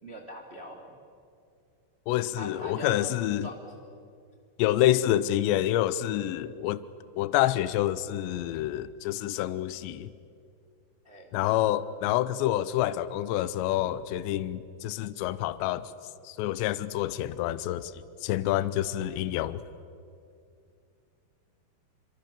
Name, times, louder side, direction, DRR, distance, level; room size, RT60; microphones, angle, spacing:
voice 1, 0.0-1.0 2.4-3.0 3.4-3.6 4.8-5.1 11.0-11.3, equal, 25° right, 1.4 m, -42 dB
voice 2, 2.1-3.5 4.6-6.8 7.2-10.1 11.3-15.9 16.3-17.9 18.2-19.6, left 13 dB, 85° left, 3.0 m, -27 dB
29.0 x 25.5 x 6.9 m
omnidirectional pair, 5.1 m